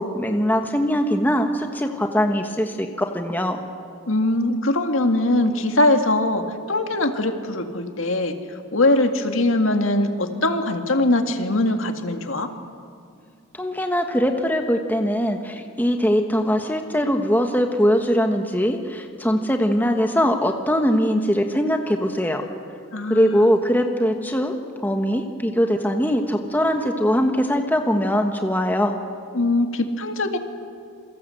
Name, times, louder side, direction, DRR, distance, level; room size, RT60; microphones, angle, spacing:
voice 1, 0.0-3.6 13.5-22.4 23.1-24.5 24.8-29.0, equal, 10° left, 4 dB, 1.3 m, -21 dB
voice 2, 4.1-8.4 8.7-12.5 22.9-23.3 29.3-30.4, left 2 dB, 70° left, 6 dB, 2.0 m, -21 dB
28.0 x 24.0 x 7.9 m, 2.3 s
head